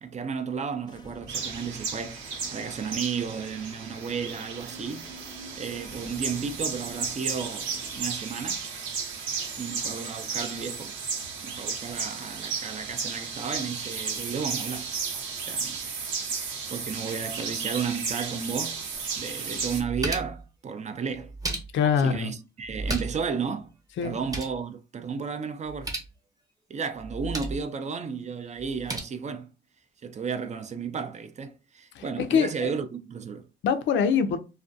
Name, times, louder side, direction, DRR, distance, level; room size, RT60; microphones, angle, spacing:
voice 1, 0.0-5.2 5.6-8.7 9.6-11.0 11.4-14.9 15.4-15.9 16.7-18.9 19.2-21.3 22.0-23.7 24.0-25.9 26.7-29.5 30.0-33.5, right 6 dB, 35° right, 0.4 m, -33 dB
sound 1, 0.8-8.0, equal, 20° left, 0.6 m, -48 dB
sound 2, 1.3-19.8, right 5 dB, 90° right, 0.8 m, -34 dB
sound 3, 19.0-19.1 19.6-20.5 21.1-22.0 22.6-23.3 23.6-23.7 24.0-24.6 25.6-26.1 27.0-27.6 28.6-29.0, right 2 dB, 20° right, 0.9 m, -34 dB
voice 2, 21.7-22.3 24.0-24.2 31.9-32.7 33.6-34.4, left 7 dB, 70° left, 0.5 m, -24 dB
2.4 x 2.2 x 2.5 m
cardioid pair, 90°, 20 cm